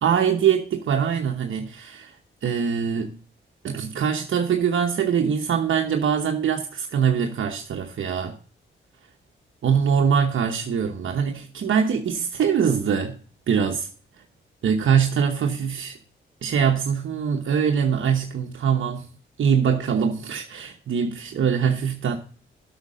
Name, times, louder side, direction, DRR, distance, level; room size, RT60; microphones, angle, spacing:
voice 1, 0.0-3.1 3.6-8.4 9.6-13.2 13.5-13.9 14.6-16.0 16.4-19.1 19.4-22.2, right 7 dB, 70° right, 1.0 m, -23 dB
8.1 x 6.0 x 7.4 m
cardioid pair, 80°, 21 cm